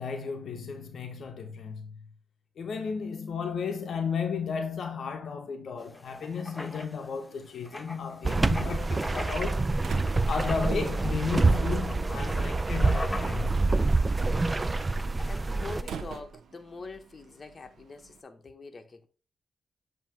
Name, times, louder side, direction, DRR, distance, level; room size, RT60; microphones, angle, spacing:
voice 1, 0.0-2.1 2.6-9.7 10.3-13.7, left 6 dB, 70° left, 0.7 m, -34 dB
Writing, 5.8-16.2, left 2 dB, 15° left, 0.6 m, -43 dB
sound 1, 8.2-15.8, right 3 dB, 25° right, 0.3 m, -26 dB
Slam, 8.8-18.2, right 6 dB, 80° right, 0.6 m, -48 dB
voice 2, 15.2-19.1, left 3 dB, 40° left, 0.9 m, -44 dB
7.4 x 2.8 x 4.5 m
cardioid pair, 85°, 0 cm